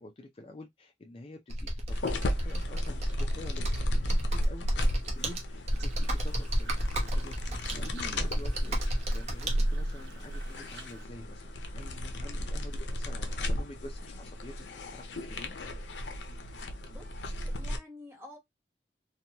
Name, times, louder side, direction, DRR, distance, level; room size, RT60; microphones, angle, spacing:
voice 1, 0.0-4.0 4.3-4.7 5.1-6.7 7.1-8.8 9.1-15.6, left 1 dB, 30° left, 0.4 m, -48 dB
Computer keyboard, 1.5-9.6, equal, 40° right, 0.7 m, -32 dB
sound 1, 1.9-17.8, equal, 85° left, 0.6 m, -34 dB
sound 2, 5.7-11.1, right 7 dB, 80° right, 0.6 m, -53 dB
voice 2, 16.9-18.4, left 1 dB, 15° right, 1.0 m, -50 dB
2.9 x 2.2 x 2.8 m
head